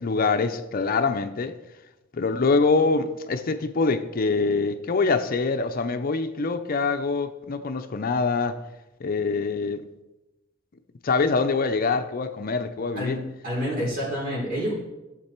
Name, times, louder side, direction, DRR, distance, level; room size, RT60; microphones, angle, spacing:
voice 1, 0.0-1.5 2.1-8.6 9.0-9.8 11.0-13.1, left 4 dB, 45° left, 0.5 m, -24 dB
voice 2, 13.4-14.7, equal, 45° right, 4.1 m, -28 dB
12.0 x 7.3 x 4.4 m
head